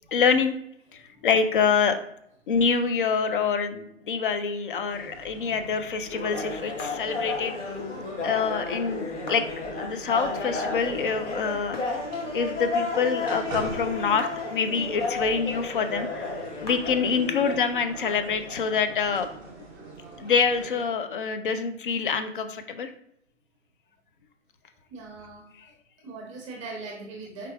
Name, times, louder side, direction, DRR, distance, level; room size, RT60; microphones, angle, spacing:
voice 1, 0.1-0.5 0.9-2.0 2.5-7.6 8.2-11.8 12.3-16.3 16.6-19.3 20.2-22.9, left 6 dB, 45° left, 8 dB, 0.5 m, -26 dB
sound 1, 4.9-20.8, right 3 dB, 5° right, 0.6 m, -43 dB
sound 2, 6.1-17.6, left 3 dB, 70° left, 1.3 m, -33 dB
voice 2, 24.9-25.8 26.0-27.5, right 3 dB, 25° right, -2 dB, 0.9 m, -40 dB
4.7 x 3.3 x 3.4 m, 0.73 s
hypercardioid pair, 150°, 37 cm